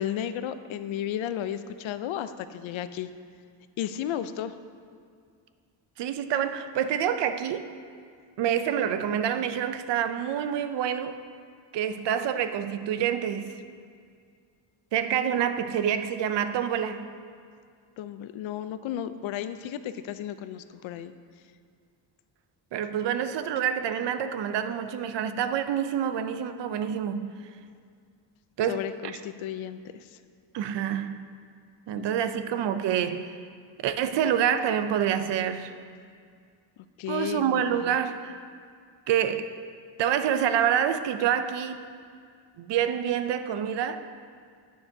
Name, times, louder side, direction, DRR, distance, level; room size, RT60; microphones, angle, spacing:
voice 1, 0.0-3.1 3.8-4.5 18.0-21.1 28.7-30.2 31.9-32.1 37.0-38.0, left 10 dB, 90° left, 0.6 m, -33 dB
voice 2, 6.0-7.7 8.4-11.2 11.7-13.5 14.9-17.1 22.7-27.3 28.6-28.8 30.5-31.3 31.9-33.4 33.8-35.7 37.1-38.4 39.1-39.6 40.0-41.9 42.6-44.0, right 9 dB, 65° right, 0.5 m, -27 dB
11.5 x 9.3 x 2.7 m
wide cardioid pair, 180°, 46 cm